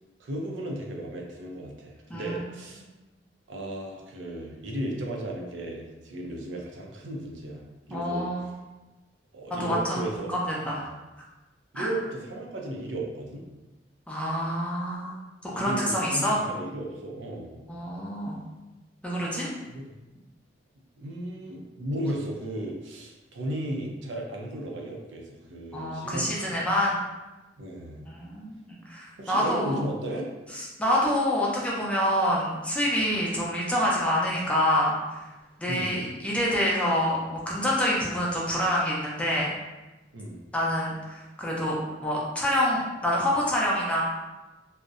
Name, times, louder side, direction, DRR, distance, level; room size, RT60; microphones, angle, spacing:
voice 1, 0.2-2.8 3.5-7.6 7.9-8.5 9.3-10.3 11.7-13.4 15.5-17.6 19.5-19.9 21.0-26.7 27.6-28.1 29.2-30.2 35.7-36.1 40.1-40.4, right 1 dB, 85° right, 0 dB, 0.5 m, -35 dB
voice 2, 2.1-2.4 7.9-8.5 9.5-10.9 11.7-11.9 14.1-15.1 15.4-16.4 17.7-18.4 19.0-19.5 25.7-27.0 28.1-29.8 30.8-34.9 35.6-39.5 40.5-44.0, equal, 5° left, -5 dB, 0.4 m, -27 dB
2.6 x 2.0 x 2.4 m, 1.1 s
head